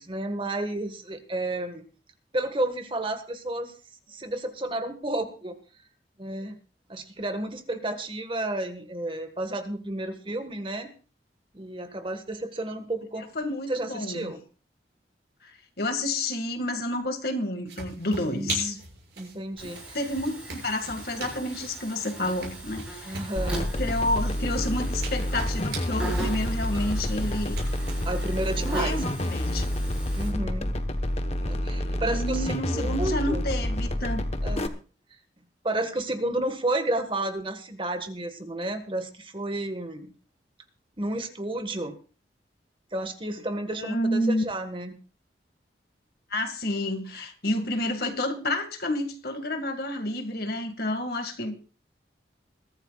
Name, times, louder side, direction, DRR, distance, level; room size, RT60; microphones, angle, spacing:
voice 1, 0.0-1.8 2.3-3.7 4.1-5.6 6.2-6.6 6.9-10.9 11.5-13.2 13.7-14.4 18.0-18.8 19.2-20.0 23.0-23.7 28.0-29.0 30.2-30.7 31.4-33.4 34.4-34.7 35.6-40.1 41.0-42.0 42.9-45.0, right 1 dB, 30° right, 8 dB, 1.5 m, -31 dB
voice 2, 13.4-14.3 15.4-18.8 19.6-23.2 23.8-27.6 28.8-29.7 32.0-34.2 43.7-44.4 46.3-51.5, left 1 dB, 60° left, 6 dB, 2.0 m, -30 dB
sound 1, 17.7-29.7, right 3 dB, 75° right, 6.9 m, -42 dB
Buzz, 19.6-30.3, right 2 dB, 5° right, 7.2 m, -40 dB
sound 2, 23.4-34.7, left 1 dB, 35° left, 1.1 m, -28 dB
22.0 x 14.0 x 2.4 m, 0.36 s
head